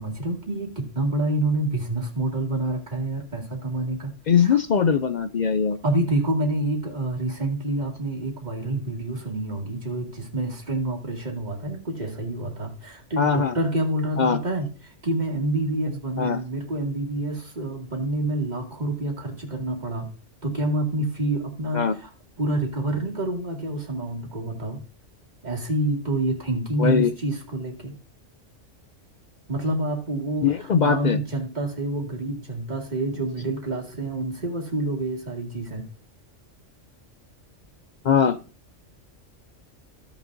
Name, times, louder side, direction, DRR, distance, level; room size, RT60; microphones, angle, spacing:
voice 1, 0.0-4.1 4.4-4.6 5.8-20.1 20.4-22.1 22.4-24.8 25.4-27.9 29.5-35.9, right 2 dB, 35° right, 0 dB, 2.3 m, -27 dB
voice 2, 4.3-5.8 13.2-13.6 14.2-14.4 16.2-16.4 21.7-22.0 26.8-27.1 30.4-31.2 38.0-38.4, left 6 dB, 65° left, 10 dB, 0.4 m, -21 dB
15.5 x 6.2 x 2.6 m, 0.35 s
omnidirectional pair, 1.3 m